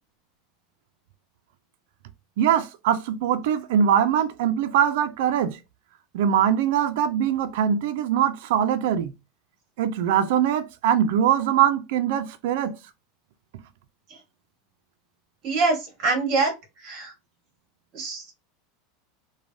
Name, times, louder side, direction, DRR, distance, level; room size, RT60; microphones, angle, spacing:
voice 1, 2.4-5.6 6.1-9.1 9.8-12.8, right 9 dB, 65° right, 0.3 m, -22 dB
voice 2, 15.4-16.5 16.8-17.1 17.9-18.3, right 3 dB, 40° right, 1.4 m, -24 dB
3.2 x 2.1 x 2.5 m
supercardioid pair, 155°, 0 cm